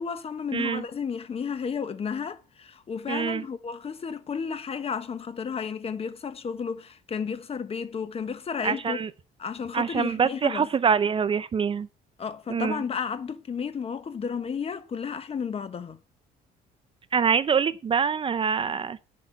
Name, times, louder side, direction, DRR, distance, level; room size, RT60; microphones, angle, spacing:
voice 1, 0.0-9.0 9.4-10.7 12.2-16.0, left 6 dB, 35° left, 1.3 m, -32 dB
voice 2, 0.5-0.8 3.1-3.4 8.6-9.1 9.7-11.9 12.5-12.8 17.1-19.0, right 6 dB, 30° right, 0.5 m, -25 dB
10.0 x 5.5 x 8.2 m
cardioid pair, 110°, 17 cm